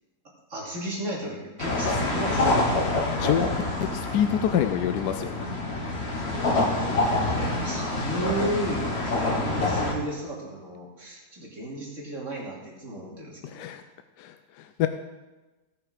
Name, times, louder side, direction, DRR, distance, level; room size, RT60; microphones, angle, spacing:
voice 1, 0.5-2.8 6.5-13.7, right 1 dB, 45° right, -4 dB, 3.1 m, -34 dB
sound 1, 1.6-9.9, left 2 dB, 40° left, 1.7 m, -26 dB
voice 2, 3.1-3.6 3.9-5.5 13.4-13.8 14.2-14.9, left 10 dB, 80° left, 8 dB, 1.2 m, -27 dB
17.5 x 6.3 x 5.0 m, 1.2 s
omnidirectional pair, 1.8 m